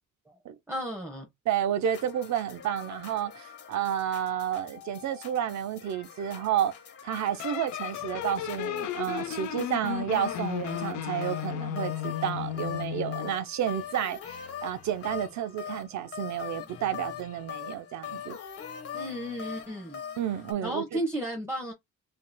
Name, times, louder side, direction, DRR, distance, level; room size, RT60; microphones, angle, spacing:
voice 1, 0.7-1.3 18.9-20.0 20.6-21.7, right 1 dB, 10° right, 1.1 m, -33 dB
voice 2, 1.5-6.7 7.0-18.4 20.2-21.0, right 10 dB, 70° right, 0.6 m, -31 dB
sound 1, 1.8-20.5, left 8 dB, 50° left, 1.4 m, -42 dB
sound 2, 7.4-13.4, left 12 dB, 70° left, 0.6 m, -34 dB
4.2 x 2.9 x 2.2 m
cardioid pair, 90°, 30 cm